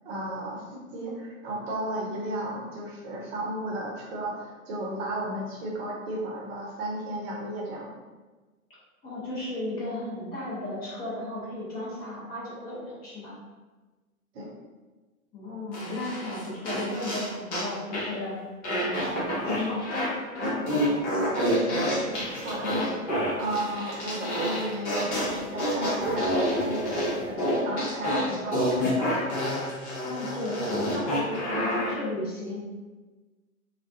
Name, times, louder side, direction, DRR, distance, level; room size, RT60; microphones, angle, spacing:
voice 1, 0.0-7.9 14.3-14.5 21.1-29.1, right 1 dB, 45° right, -3 dB, 0.7 m, -34 dB
voice 2, 9.0-13.3 15.3-18.4 18.8-20.0 30.0-32.6, left 1 dB, 20° left, -7 dB, 0.7 m, -35 dB
sound 1, 15.7-17.7 17.9-18.2 18.6-20.1 20.3-31.9, equal, 55° left, 1.0 m, -28 dB
2.3 x 2.2 x 2.6 m, 1.3 s
figure-of-eight pair, 105°, 44 cm